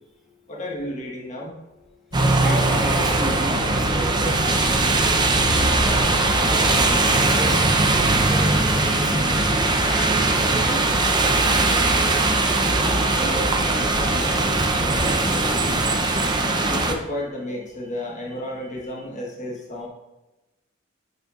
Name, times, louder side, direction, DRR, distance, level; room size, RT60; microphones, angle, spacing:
voice 1, 0.5-1.5 16.7-19.9, left 1 dB, 40° left, -2 dB, 1.4 m, -32 dB
sound 1, 2.1-9.5, left 2 dB, 70° left, 1.6 m, -33 dB
sound 2, 2.1-16.9, right 2 dB, 20° right, 0.7 m, -20 dB
voice 2, 2.4-9.3 9.9-15.4, right 2 dB, ahead, -3 dB, 1.5 m, -34 dB
9.9 x 6.6 x 2.5 m, 1.0 s
head